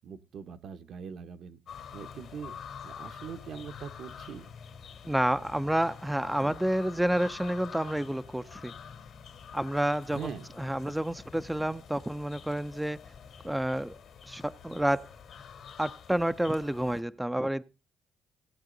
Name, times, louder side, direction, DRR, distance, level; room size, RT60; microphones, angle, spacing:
voice 1, 0.0-1.6 1.9-2.6 2.8-4.5 10.1-10.5, right 7 dB, 65° right, 1.1 m, -42 dB
sound 1, 1.7-17.0, left 7 dB, 70° left, 2.5 m, -47 dB
voice 2, 5.0-8.7 9.5-10.3 10.6-13.0 13.4-14.0 14.3-15.1 15.8-17.6, right 1 dB, 5° right, 0.5 m, -29 dB
17.5 x 8.5 x 3.9 m
cardioid pair, 90°, 0 cm